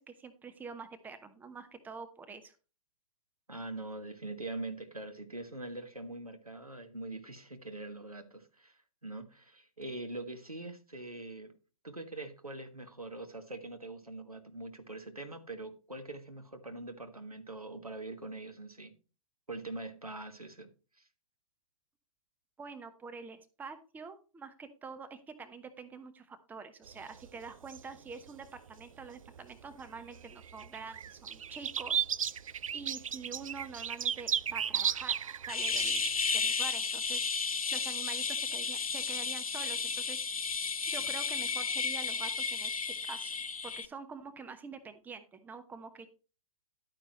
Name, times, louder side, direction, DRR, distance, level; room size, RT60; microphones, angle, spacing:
voice 1, 0.0-2.5 22.6-32.1 32.7-35.1 35.5-36.0 36.3-40.4 40.9-43.4 43.6-46.1, right 5 dB, 10° right, 0.9 m, -46 dB
voice 2, 3.5-11.5 11.8-18.9 19.5-20.7 21.0-21.1, right 2 dB, 90° right, 1.6 m, -43 dB
sound 1, 26.9-29.4 29.8-36.3, right 8 dB, 65° right, 0.5 m, -35 dB
sound 2, 35.5-43.9, left 5 dB, 75° left, 0.7 m, -33 dB
11.5 x 9.0 x 3.0 m
figure-of-eight pair, 110°, 18 cm